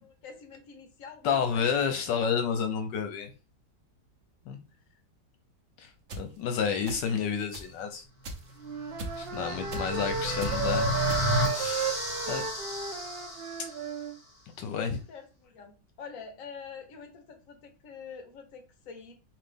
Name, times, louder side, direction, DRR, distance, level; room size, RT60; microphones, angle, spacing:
voice 1, 0.0-1.6 9.3-9.6 15.1-19.1, left 5 dB, 50° left, 5 dB, 1.3 m, -46 dB
voice 2, 1.2-3.3 4.5-4.6 5.8-5.9 6.2-8.0 9.2-10.9 11.5-12.0 12.3-12.4 14.6-15.0, left 6 dB, 80° left, 7 dB, 1.4 m, -30 dB
sound 1, 6.1-6.2 6.9-7.2 7.5-7.7 8.2-8.6 9.0-9.3 9.7-10.0 10.4-10.6 11.1-11.5, right 2 dB, 50° right, 1.0 m, -38 dB
Wind instrument woodwind instrument, 8.6-14.1, right 5 dB, 80° right, 0.5 m, -34 dB
sound 2, 8.8-13.9, left 1 dB, 15° left, 1.4 m, -32 dB
4.9 x 3.1 x 3.4 m, 0.32 s
omnidirectional pair, 1.9 m